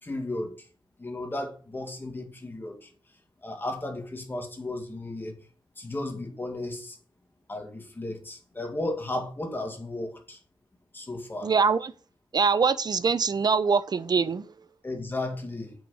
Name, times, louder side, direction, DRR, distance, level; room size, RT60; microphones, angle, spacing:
voice 1, 0.0-0.7 1.0-2.9 3.4-5.4 5.8-7.0 7.5-10.4 10.9-11.5 14.8-15.7, left 2 dB, 25° left, 2.1 m, -34 dB
voice 2, 11.4-11.9 12.3-14.4, right 5 dB, 50° right, 0.7 m, -23 dB
8.5 x 6.3 x 6.4 m
wide cardioid pair, 160°, 9 cm